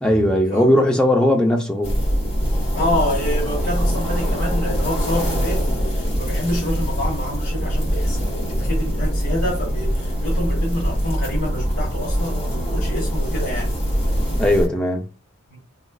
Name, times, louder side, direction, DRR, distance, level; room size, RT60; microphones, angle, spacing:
voice 1, 0.0-2.0 14.4-15.0, left 1 dB, 5° left, 0.4 m, -18 dB
sound 1, 1.8-14.7, equal, 30° left, 1.2 m, -23 dB
voice 2, 2.7-13.7 15.5-15.6, left 1 dB, 60° left, 1.1 m, -27 dB
4.0 x 2.3 x 2.2 m
head